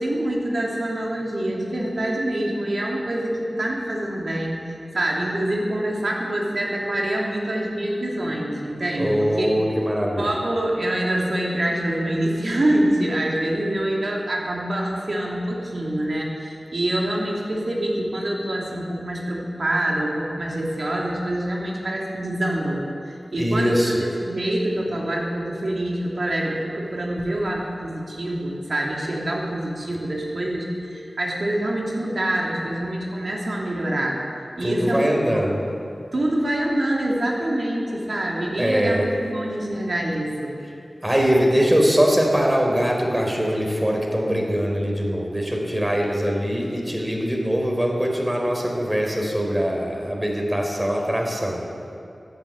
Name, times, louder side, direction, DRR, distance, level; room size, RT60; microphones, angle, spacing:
voice 1, 0.0-4.6 4.9-9.5 10.2-34.2 34.6-35.1 36.1-40.6, right 1 dB, 65° right, -2 dB, 3.1 m, -25 dB
voice 2, 9.0-10.3 23.4-24.0 34.6-35.7 38.6-39.1 41.0-51.7, equal, 15° right, 0 dB, 4.1 m, -22 dB
14.0 x 9.0 x 9.1 m, 2.6 s
cardioid pair, 40°, 0 cm